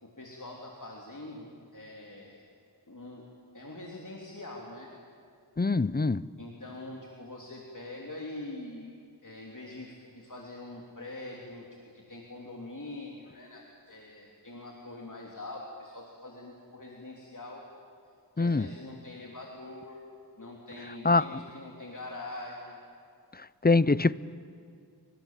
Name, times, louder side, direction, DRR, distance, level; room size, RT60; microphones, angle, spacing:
voice 1, 0.0-2.4 2.9-3.3 3.5-4.9 6.4-8.9 9.2-11.7 11.9-17.6 18.4-20.0 20.4-22.8, left 2 dB, 50° left, 3.2 m, -44 dB
voice 2, 5.6-6.2 18.4-18.7 21.0-21.2 23.6-24.1, left 3 dB, 25° left, 0.6 m, -23 dB
29.5 x 24.0 x 7.5 m
wide cardioid pair, 55°, 39 cm